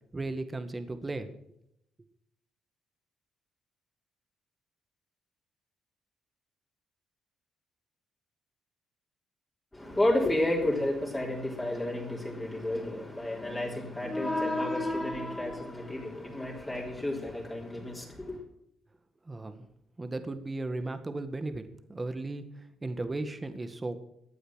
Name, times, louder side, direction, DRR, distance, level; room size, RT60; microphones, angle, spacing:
voice 1, 0.1-1.3 19.3-19.7 20.0-24.0, right 2 dB, 20° right, 9 dB, 1.7 m, -36 dB
voice 2, 9.7-18.4, left 1 dB, 15° left, -2 dB, 3.7 m, -31 dB
15.5 x 9.5 x 6.3 m, 0.76 s
cardioid pair, 90°, 0 cm